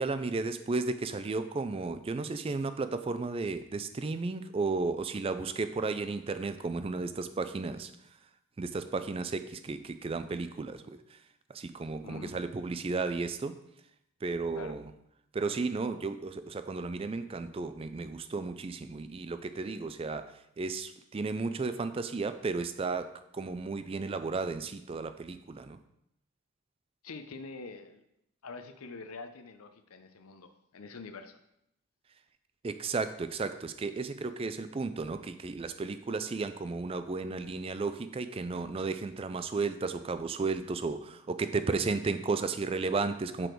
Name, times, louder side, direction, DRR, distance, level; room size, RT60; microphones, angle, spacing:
voice 1, 0.0-7.9 8.6-11.2 11.5-13.6 14.2-14.9 15.3-25.8 32.6-43.5, right 3 dB, 25° right, 11 dB, 0.3 m, -34 dB
voice 2, 12.0-12.4 14.5-14.8 27.0-28.0 28.4-31.4, left 4 dB, 80° left, 9 dB, 0.6 m, -45 dB
6.1 x 5.0 x 4.5 m, 0.80 s
head